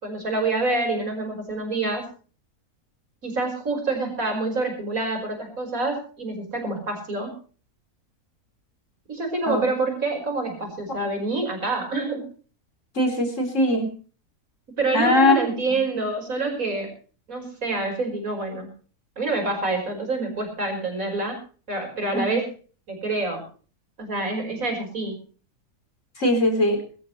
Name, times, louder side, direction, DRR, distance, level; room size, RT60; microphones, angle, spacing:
voice 1, 0.0-2.1 3.2-7.4 9.1-12.3 14.8-16.9 17.3-18.7 19.2-21.4 21.7-22.5 22.9-23.4 24.0-25.2, right 2 dB, 60° right, 3 dB, 5.7 m, -27 dB
voice 2, 13.0-13.9 14.9-15.4 22.1-22.4 26.2-26.8, left 1 dB, 50° left, 4 dB, 4.3 m, -20 dB
22.0 x 13.0 x 3.2 m, 0.39 s
omnidirectional pair, 1.6 m